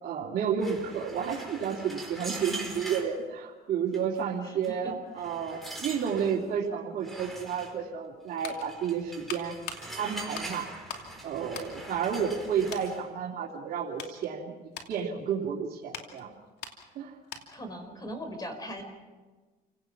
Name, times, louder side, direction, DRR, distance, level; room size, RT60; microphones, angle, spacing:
voice 1, 0.0-9.5 10.0-10.7 11.2-14.5 14.9-16.3 16.9-17.1, right 7 dB, 60° right, -5 dB, 2.9 m, -31 dB
sound 1, 0.6-3.1 3.9-4.2 4.6-4.7 5.2-6.4 7.0-7.7 8.4-13.0, right 2 dB, ahead, 4.7 m, -42 dB
voice 2, 4.4-5.3 17.5-18.8, equal, 25° left, 6 dB, 4.7 m, -40 dB
sound 2, 8.0-11.1 11.5-12.4 12.7-12.9 13.5-17.7 18.0-18.2, left 7 dB, 80° left, 2.8 m, -44 dB
28.5 x 17.5 x 6.0 m, 1.3 s
cardioid pair, 110°, 17 cm